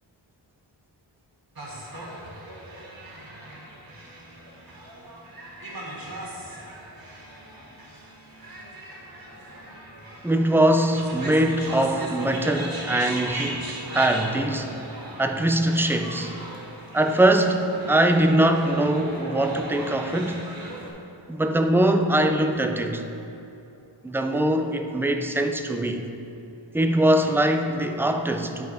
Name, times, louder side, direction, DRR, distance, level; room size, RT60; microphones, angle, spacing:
sound 1, 1.6-20.9, right 1 dB, 50° right, 1.4 m, -38 dB
voice 1, 10.2-14.8 15.2-16.3 16.9-20.4 21.3-23.0 24.0-26.0 26.7-28.7, right 1 dB, 5° right, 5 dB, 0.5 m, -22 dB
9.2 x 5.8 x 5.0 m, 2.9 s
wide cardioid pair, 90°, 46 cm